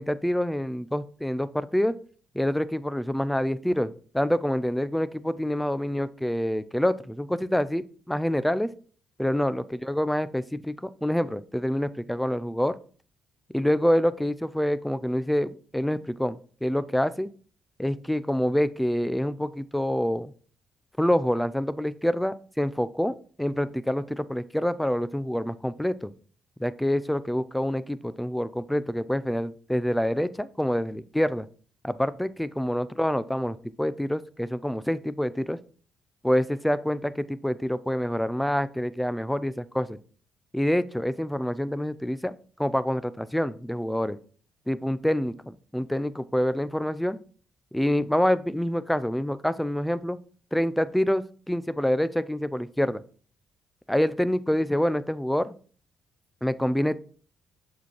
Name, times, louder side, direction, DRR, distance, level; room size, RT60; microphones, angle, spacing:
voice 1, 0.0-1.9 2.3-8.7 9.2-12.8 13.5-17.3 17.8-20.3 21.0-26.1 26.6-31.5 31.8-35.6 36.2-40.0 40.5-42.3 42.6-44.2 44.7-47.2 47.7-50.2 50.5-53.0 53.9-55.5 56.4-57.0, equal, 5° left, 16 dB, 0.5 m, -26 dB
6.8 x 4.7 x 4.3 m, 0.42 s
cardioid pair, 90°, 0 cm